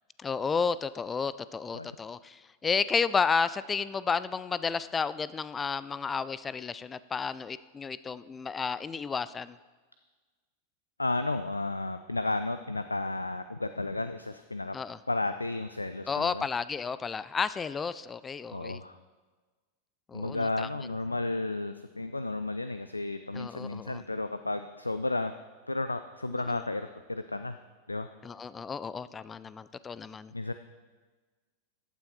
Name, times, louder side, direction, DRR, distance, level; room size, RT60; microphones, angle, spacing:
voice 1, 0.2-9.6 14.7-15.0 16.1-18.8 20.1-20.7 23.3-24.0 26.3-26.6 28.2-30.3, left 5 dB, 15° left, 17 dB, 0.4 m, -32 dB
voice 2, 11.0-14.8 15.1-16.4 18.5-19.0 20.1-25.3 25.7-27.6 27.9-28.1 30.3-30.5, left 2 dB, 80° left, 10 dB, 0.4 m, -33 dB
14.5 x 8.9 x 4.3 m, 1.3 s
figure-of-eight pair, 90°, 0 cm